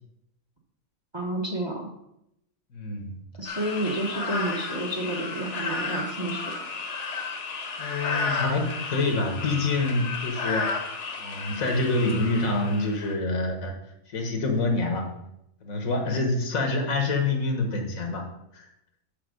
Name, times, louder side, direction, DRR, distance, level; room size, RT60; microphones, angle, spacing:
voice 1, 1.1-1.9 3.4-6.5, right 1 dB, 20° right, 1 dB, 1.0 m, -30 dB
voice 2, 2.7-3.2 7.8-10.7 11.2-13.8 14.1-15.1 15.6-18.3 18.5-18.7, left 2 dB, 75° left, 3 dB, 1.7 m, -26 dB
sound 1, 3.5-13.2, left 4 dB, 60° left, 1.3 m, -33 dB
7.1 x 4.4 x 6.3 m, 0.81 s
omnidirectional pair, 1.4 m